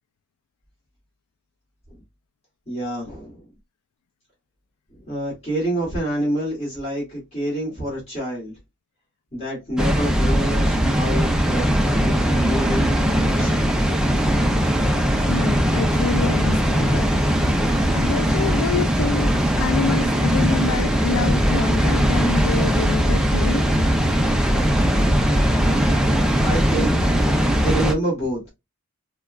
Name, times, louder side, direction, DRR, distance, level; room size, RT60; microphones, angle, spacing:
voice 1, 2.7-3.4 5.1-8.5 9.3-13.7 26.0-28.5, right 1 dB, 30° left, 2.0 m, -28 dB
Water, 9.8-27.9, equal, 5° right, 0.4 m, -19 dB
voice 2, 15.2-17.1 17.9-23.7, left 6 dB, 80° left, 0.3 m, -27 dB
4.8 x 2.2 x 2.3 m
head